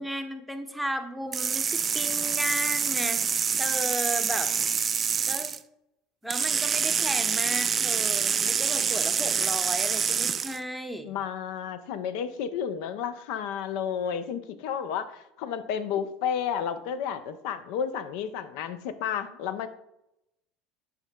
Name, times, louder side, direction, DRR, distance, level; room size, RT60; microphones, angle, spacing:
voice 1, 0.0-4.5 5.3-5.5 6.2-11.2, equal, ahead, 6 dB, 0.8 m, -34 dB
sound 1, 1.3-5.6 6.3-10.6, right 6 dB, 30° right, 0.3 m, -26 dB
voice 2, 11.0-19.7, left 8 dB, 60° left, 13 dB, 0.5 m, -32 dB
9.7 x 5.0 x 2.2 m, 0.86 s
figure-of-eight pair, 70°, 0 cm